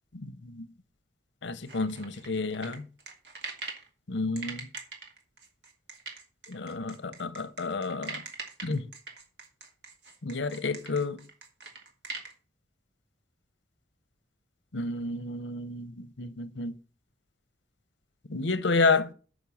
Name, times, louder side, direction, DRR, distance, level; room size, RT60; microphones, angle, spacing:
voice 1, 0.2-0.6 1.4-2.8 4.1-4.7 6.5-8.2 8.6-8.9 10.2-11.2 14.7-16.7 18.3-19.1, left 3 dB, 85° left, 0.9 m, -30 dB
sound 1, 1.7-3.9 4.4-12.3, right 4 dB, 70° right, 2.3 m, -41 dB
6.5 x 6.1 x 7.1 m
head